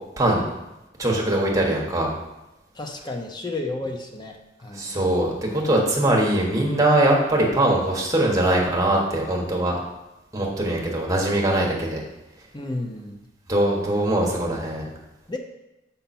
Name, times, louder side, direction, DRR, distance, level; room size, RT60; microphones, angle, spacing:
voice 1, 1.0-2.1 4.7-9.8 10.3-12.0 13.5-14.9, right 1 dB, 20° right, -2 dB, 1.3 m, -21 dB
voice 2, 2.7-5.0 12.5-13.2 15.3-15.4, left 2 dB, 25° left, 3 dB, 0.8 m, -32 dB
6.7 x 5.6 x 4.3 m, 0.96 s
head